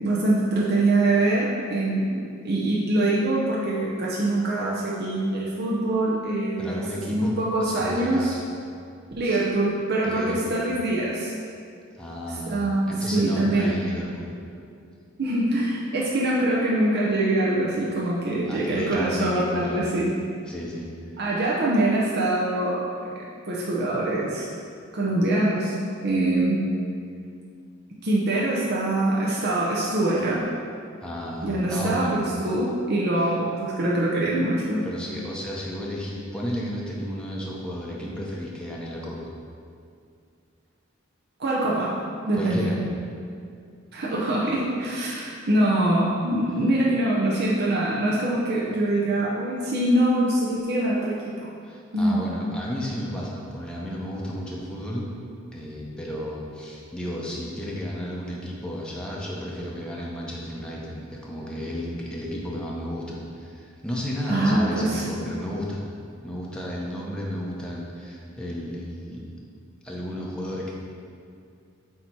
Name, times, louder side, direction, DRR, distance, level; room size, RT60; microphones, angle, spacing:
voice 1, 0.0-8.3 9.2-11.3 12.5-13.7 15.2-20.1 21.2-22.8 23.5-24.5 24.9-25.8 26.0-26.7 28.0-30.4 31.4-34.9 41.4-42.0 42.3-42.7 43.9-51.5 51.9-52.2 64.3-65.0, right 1 dB, 55° right, -5 dB, 0.7 m, -24 dB
voice 2, 6.6-8.4 9.2-9.4 10.0-10.5 12.0-12.6 12.9-14.3 18.5-19.9 20.5-20.9 31.0-32.2 34.8-39.3 42.3-42.8 51.6-55.1 55.5-65.8 66.2-69.2 69.8-70.7, equal, 5° left, -4 dB, 0.7 m, -33 dB
7.9 x 2.9 x 4.5 m, 2.4 s
head